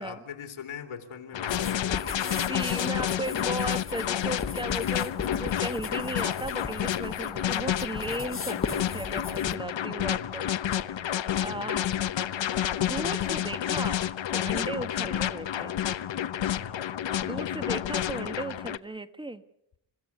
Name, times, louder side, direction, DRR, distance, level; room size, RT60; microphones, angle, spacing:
voice 1, 0.0-2.3 10.0-10.4 11.4-11.8 15.0-15.3 16.5-16.9, left 7 dB, 90° left, 6 dB, 3.3 m, -41 dB
sound 1, 1.3-18.8, left 10 dB, 65° left, 1.0 m, -30 dB
sound 2, 1.5-9.6, left 4 dB, 25° left, 1.3 m, -38 dB
voice 2, 2.2-10.5 10.9-11.8 12.8-15.8 17.2-19.4, right 1 dB, 10° right, 11 dB, 1.1 m, -36 dB
29.5 x 16.0 x 8.3 m, 0.81 s
wide cardioid pair, 140°, 48 cm